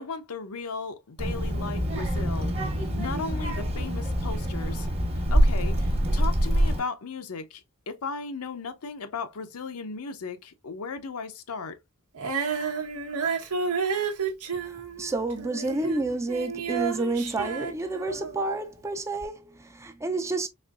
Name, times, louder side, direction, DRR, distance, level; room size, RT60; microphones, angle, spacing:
voice 1, 0.0-2.6 2.9-4.9 5.1-11.8, left 4 dB, 75° left, 0.6 m, -36 dB
Child speech kid speaking, 1.2-6.8, equal, 30° right, 1.1 m, -25 dB
Female singing, 12.1-18.5 19.2-19.3, right 5 dB, 85° right, 1.0 m, -31 dB
voice 2, 15.0-20.5, right 2 dB, 15° right, 0.4 m, -29 dB
4.2 x 3.0 x 2.3 m
head